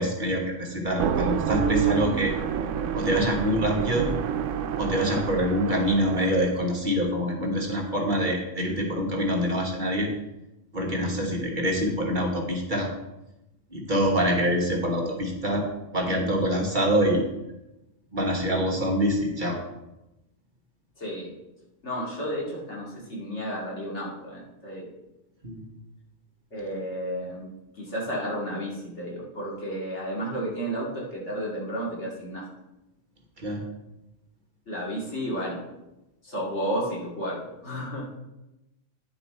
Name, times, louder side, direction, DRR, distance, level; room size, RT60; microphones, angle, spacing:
voice 1, 0.0-2.3 2.9-4.1 4.8-10.1 10.7-12.9 13.7-15.6 15.9-17.2 18.1-19.6 25.4-25.6 33.4-33.7, equal, 40° right, 0 dB, 1.4 m, -25 dB
sound 1, 0.9-6.5, right 7 dB, 85° right, 0.9 m, -28 dB
voice 2, 21.0-21.3 21.8-24.9 26.5-32.5 34.7-35.6 36.2-38.2, equal, 70° left, -4 dB, 2.4 m, -32 dB
10.0 x 5.4 x 4.3 m, 0.96 s
omnidirectional pair, 1.3 m